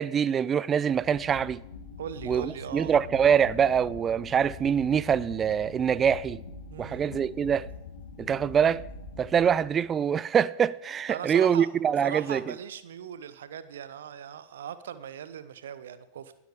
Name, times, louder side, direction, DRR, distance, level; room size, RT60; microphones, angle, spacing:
voice 1, 0.0-1.6 2.2-6.4 6.8-7.7 8.2-8.8 9.2-12.5, right 8 dB, 25° right, 0.5 m, -24 dB
sound 1, 0.8-9.9, left 4 dB, 65° left, 2.8 m, -44 dB
voice 2, 2.0-2.9 6.7-7.0 11.1-11.7 12.0-16.4, right 9 dB, 60° right, 1.2 m, -39 dB
20.0 x 12.5 x 5.1 m
figure-of-eight pair, 90°, 0 cm